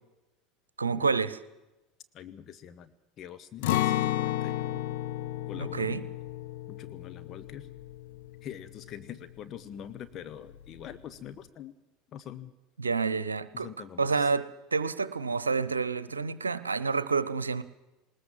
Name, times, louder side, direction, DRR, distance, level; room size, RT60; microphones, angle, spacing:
voice 1, 0.8-1.4 5.5-6.0 12.8-13.7 14.0-17.6, right 4 dB, 85° right, 16 dB, 0.9 m, -29 dB
voice 2, 2.1-4.9 5.5-6.0 6.7-7.7 8.4-11.7 12.1-12.5 13.5-14.3, left 9 dB, 40° left, 9 dB, 1.2 m, -44 dB
Acoustic guitar, 3.6-9.5 9.8-10.0 10.5-11.0, left 13 dB, 65° left, 1.1 m, -33 dB
20.0 x 20.0 x 7.5 m, 1.0 s
figure-of-eight pair, 75°, 0 cm